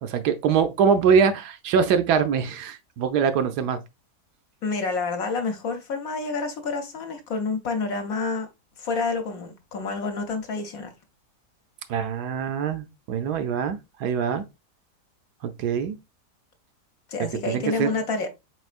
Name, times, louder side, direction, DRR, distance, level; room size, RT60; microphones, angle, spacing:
voice 1, 0.0-3.8 11.9-14.4 15.4-16.0 17.5-17.9, right 6 dB, 75° right, 1.1 m, -23 dB
voice 2, 4.6-8.5 8.8-10.9 17.1-18.3, left 4 dB, 60° left, 1.2 m, -28 dB
4.4 x 4.2 x 2.4 m
omnidirectional pair, 1.8 m